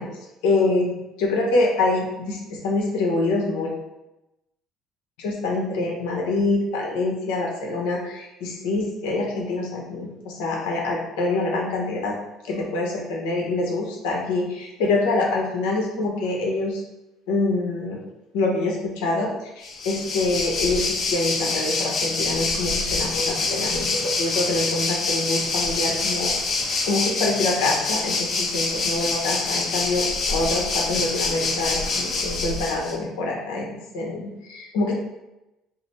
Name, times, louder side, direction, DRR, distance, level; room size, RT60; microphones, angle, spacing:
voice 1, 0.4-3.7 5.2-12.1 12.4-16.8 17.3-18.0 18.3-34.9, left 2 dB, 90° left, -1 dB, 1.0 m, -25 dB
Waves surf, 19.6-32.9, left 3 dB, 50° left, 0.8 m, -26 dB
5.0 x 2.0 x 4.2 m, 0.94 s
cardioid pair, 105°, 0 cm